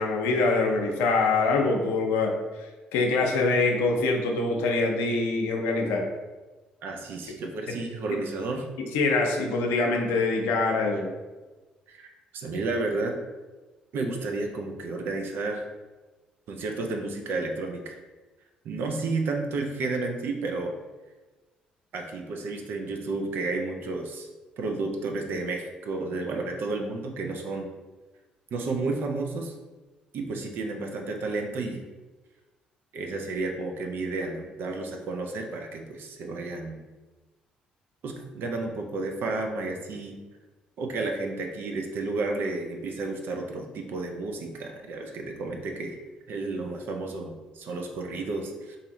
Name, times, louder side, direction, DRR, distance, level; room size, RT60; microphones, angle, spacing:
voice 1, 0.0-2.3 2.9-6.1 8.9-11.1, left 3 dB, 75° left, 2 dB, 0.6 m, -24 dB
voice 2, 6.8-8.7 11.9-13.1 13.9-15.7 16.5-18.0 18.6-20.7 21.9-24.3 24.6-27.7 28.5-29.5 30.1-31.8 32.9-36.8 38.0-40.2 40.8-46.0 46.3-48.8, right 3 dB, 60° right, 3 dB, 0.6 m, -32 dB
2.7 x 2.5 x 4.0 m, 1.2 s
hypercardioid pair, 50°, 4 cm